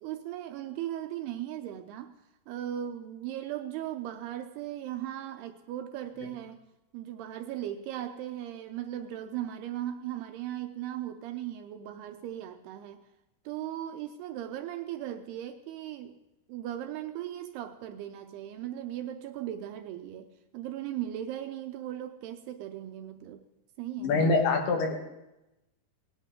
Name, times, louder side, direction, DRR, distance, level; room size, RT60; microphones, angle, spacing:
voice 1, 0.0-2.1 2.5-6.6 6.9-13.0 13.5-16.2 16.5-20.3 20.5-23.4 23.8-24.2, right 12 dB, 80° right, 7 dB, 2.4 m, -37 dB
voice 2, 24.0-25.0, left 3 dB, 70° left, 2 dB, 3.2 m, -25 dB
18.5 x 10.5 x 3.6 m, 0.95 s
omnidirectional pair, 5.0 m